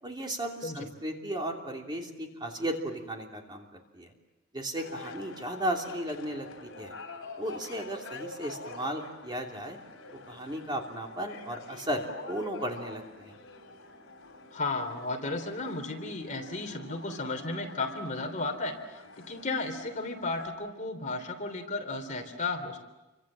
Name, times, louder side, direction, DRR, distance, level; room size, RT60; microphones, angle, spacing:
voice 1, 0.0-3.7 3.9-4.1 4.5-6.9 7.4-9.8 10.3-13.3, right 1 dB, 20° right, 1 dB, 3.0 m, -35 dB
sound 1, 4.7-20.5, left 3 dB, 75° left, 4.1 m, -46 dB
voice 2, 14.5-19.0 19.3-22.8, left 3 dB, 35° left, 4 dB, 3.3 m, -34 dB
29.5 x 25.0 x 7.6 m, 1.0 s
head